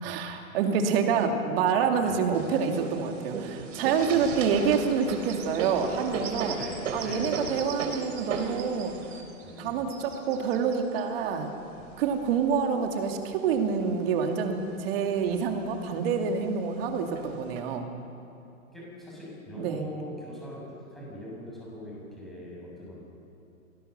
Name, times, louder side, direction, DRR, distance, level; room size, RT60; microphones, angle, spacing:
voice 1, 0.0-6.6 6.9-8.9 9.6-11.5 12.0-17.9 19.6-19.8, right 6 dB, 40° right, 4 dB, 2.7 m, -27 dB
voice 2, 2.0-2.3 4.0-4.2 6.6-7.6 9.4-10.0 11.7-12.1 18.7-20.6 20.9-23.0, equal, ahead, -6 dB, 7.0 m, -42 dB
sound 1, 2.3-12.6 13.2-14.2 14.6-14.7 15.0-15.7 16.4-16.5 17.1-17.6, right 5 dB, 60° right, 3.6 m, -37 dB
23.5 x 19.0 x 6.8 m, 2.9 s
hypercardioid pair, 145°, 42 cm